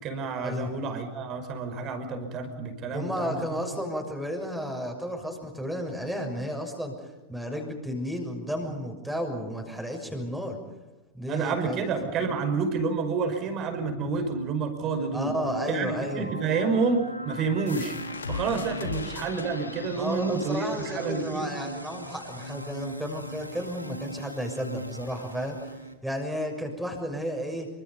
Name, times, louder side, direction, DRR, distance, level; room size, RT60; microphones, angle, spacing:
voice 1, 0.0-3.4 11.3-15.4 15.7-18.0 18.3-21.5, right 4 dB, 35° right, 6 dB, 5.4 m, -29 dB
voice 2, 2.9-6.9 7.3-10.6 11.1-11.8 15.1-16.2 18.8-18.9 19.9-25.6 26.0-27.7, equal, ahead, 2 dB, 6.4 m, -32 dB
sound 1, 13.4-25.9, right 1 dB, 90° right, 2.2 m, -39 dB
sound 2, 17.7-23.1, left 6 dB, 70° left, 1.7 m, -41 dB
27.5 x 25.5 x 5.5 m, 1.1 s
figure-of-eight pair, 90°, 0 cm